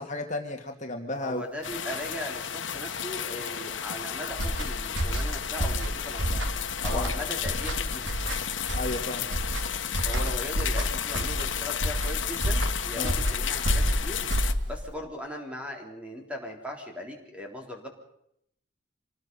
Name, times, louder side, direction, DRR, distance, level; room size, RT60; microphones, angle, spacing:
voice 1, 0.0-1.5 6.9-7.1 8.7-9.3 12.9-13.2, left 2 dB, 40° left, 3 dB, 2.1 m, -33 dB
voice 2, 1.2-6.5 6.8-8.1 10.0-14.2 14.7-17.9, left 1 dB, 5° right, 1 dB, 3.7 m, -38 dB
sound 1, 1.6-14.5, left 9 dB, 90° left, 1.3 m, -33 dB
sound 2, 4.3-14.9, right 1 dB, 80° right, 3.6 m, -29 dB
26.5 x 19.0 x 5.5 m, 0.74 s
head